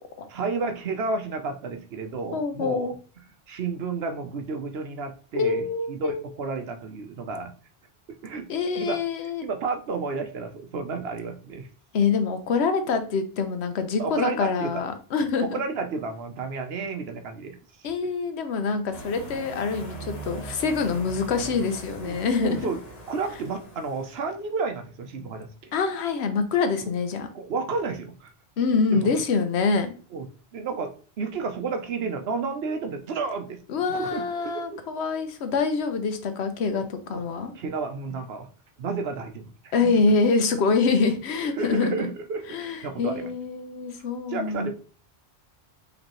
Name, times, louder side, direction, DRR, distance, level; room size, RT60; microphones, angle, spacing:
voice 1, 0.3-2.9 3.5-7.5 8.2-8.5 8.8-9.0 9.4-11.7 14.0-14.8 15.4-17.6 18.0-18.1 22.0-22.8 23.1-25.7 27.3-28.3 28.9-29.1 30.1-30.3 30.5-33.6 33.9-34.8 36.7-36.8 37.1-37.2 37.5-38.5 38.8-39.9 41.4-43.3 44.3-44.7, right 4 dB, 75° right, 6 dB, 1.0 m, -31 dB
voice 2, 2.3-2.9 5.4-6.3 8.5-9.4 11.9-15.6 17.8-22.6 25.7-27.3 28.6-29.9 33.7-37.5 39.7-42.1 42.5-44.7, left 4 dB, 85° left, 8 dB, 1.0 m, -25 dB
sound 1, 18.9-24.4, right 2 dB, 40° left, 1.2 m, -41 dB
5.1 x 3.1 x 3.0 m, 0.39 s
omnidirectional pair, 1.1 m